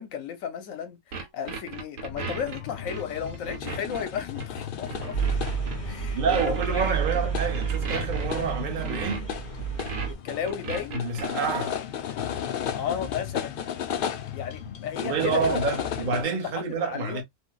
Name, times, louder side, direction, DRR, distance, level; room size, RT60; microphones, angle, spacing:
voice 1, 0.0-5.4 5.9-6.8 7.1-7.3 10.1-11.0 12.7-13.6 14.3-15.6 16.0-17.2, left 8 dB, 80° left, 1.1 m, -34 dB
sound 1, 1.1-5.8 6.3-9.4 9.8-11.3, right 4 dB, 80° right, 1.3 m, -36 dB
sound 2, 2.1-16.2, left 9 dB, 65° left, 0.5 m, -35 dB
sound 3, 5.1-10.1, right 6 dB, 40° left, 1.5 m, -30 dB
voice 2, 6.1-9.3 10.9-11.8 15.0-17.2, right 5 dB, 45° right, 0.8 m, -28 dB
3.3 x 2.7 x 2.2 m
omnidirectional pair, 1.4 m